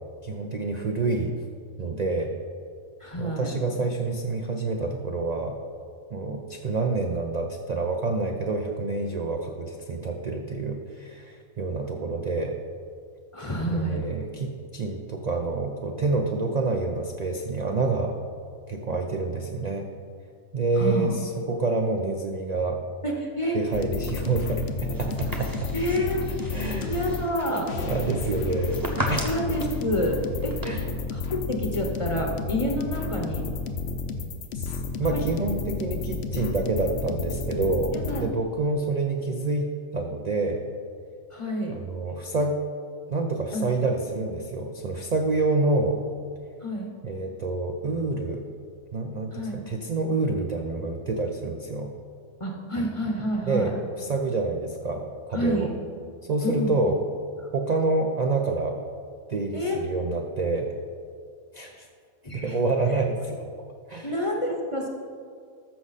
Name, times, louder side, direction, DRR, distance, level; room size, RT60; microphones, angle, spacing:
voice 1, 0.2-1.3 1.8-2.3 3.2-5.6 6.1-12.6 13.7-18.2 18.7-19.9 20.5-22.8 23.5-25.7 26.5-26.9 27.8-28.8 29.1-29.3 30.6-30.9 34.5-37.9 38.2-40.6 41.7-42.6 43.1-46.0 47.0-48.4 48.9-51.9 53.4-55.7 56.3-57.0 57.5-58.8 59.3-60.7 61.5-61.9 62.3-63.4 63.9-64.2, right 3 dB, 50° right, 2 dB, 0.5 m, -27 dB
voice 2, 3.0-3.5 13.3-14.0 20.8-21.1 23.0-23.6 25.7-26.2 26.9-27.7 29.2-30.6 31.1-33.5 35.1-35.2 37.9-38.3 41.3-41.8 43.5-43.7 46.6-46.9 49.3-49.7 52.4-53.7 55.3-55.7 56.4-56.8 59.5-59.8 62.2-62.6 64.0-64.9, equal, 25° left, 1 dB, 0.8 m, -28 dB
sound 1, 23.7-38.2, left 4 dB, 55° left, 0.8 m, -31 dB
sound 2, 24.0-30.7, equal, 15° right, 0.9 m, -37 dB
13.5 x 6.3 x 4.1 m, 2.2 s
omnidirectional pair, 1.5 m